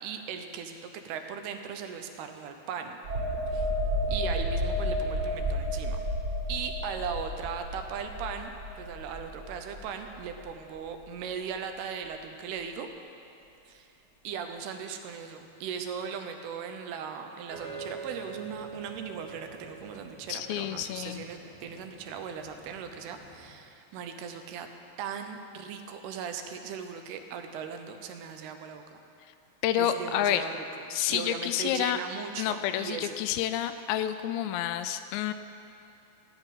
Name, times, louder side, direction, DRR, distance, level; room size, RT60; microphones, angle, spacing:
voice 1, 0.0-0.8 1.0-3.0 3.5-3.7 4.1-6.0 6.5-12.9 13.7-13.9 14.2-24.7 25.0-29.0 29.8-30.5 30.9-33.2, right 7 dB, 75° right, 6 dB, 2.5 m, -38 dB
sound 1, 3.0-10.5 10.8-11.0, equal, 40° right, 3.1 m, -32 dB
sound 2, 17.5-23.5, right 5 dB, 10° right, 0.6 m, -45 dB
voice 2, 20.3-21.3 29.6-30.5 30.9-32.0 32.4-35.3, left 11 dB, 85° left, 10 dB, 2.8 m, -29 dB
15.0 x 5.7 x 8.9 m, 2.7 s
omnidirectional pair, 5.0 m